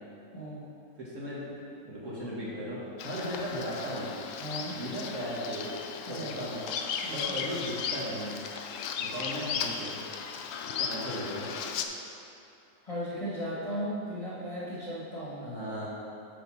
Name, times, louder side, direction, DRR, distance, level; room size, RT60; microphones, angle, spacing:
voice 1, 0.3-0.7 4.4-4.8 6.1-6.4 7.0-7.3 12.8-15.5, equal, 20° left, -9 dB, 1.5 m, -36 dB
voice 2, 1.0-1.5 1.8-4.1 4.7-5.7 6.0-6.7 7.1-8.4 9.0-10.0 10.6-11.5 15.4-15.9, equal, 45° right, -7 dB, 1.5 m, -36 dB
Bird vocalization bird call bird song, 3.0-11.8, left 6 dB, 80° left, 0.7 m, -36 dB
8.5 x 4.3 x 5.6 m, 2.8 s
omnidirectional pair, 1.9 m